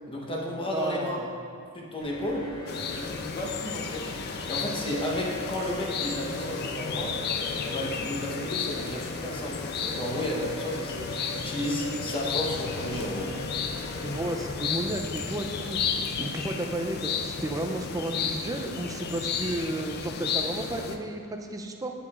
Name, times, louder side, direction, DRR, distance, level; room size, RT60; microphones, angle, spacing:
voice 1, 0.1-1.2 1.7-2.5 2.9-4.1 4.5-7.2 7.6-13.3, left 1 dB, 25° left, -2 dB, 0.9 m, -33 dB
voice 2, 0.7-1.3 14.0-15.8 16.2-21.9, right 1 dB, 15° right, 4 dB, 0.4 m, -32 dB
sound 1, 2.0-14.5, left 1 dB, 80° left, 1.1 m, -41 dB
sound 2, 2.7-21.0, left 6 dB, 50° left, 0.4 m, -33 dB
8.7 x 6.9 x 2.4 m, 2.3 s
head